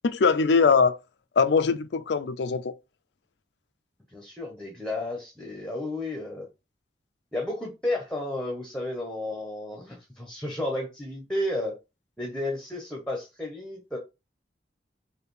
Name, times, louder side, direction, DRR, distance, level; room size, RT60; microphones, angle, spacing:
voice 1, 0.0-1.0 1.4-2.7, left 5 dB, 80° left, 0.4 m, -22 dB
voice 2, 4.1-6.5 7.3-11.8 12.2-14.0, left 1 dB, 5° left, 0.9 m, -32 dB
4.8 x 2.7 x 3.2 m
head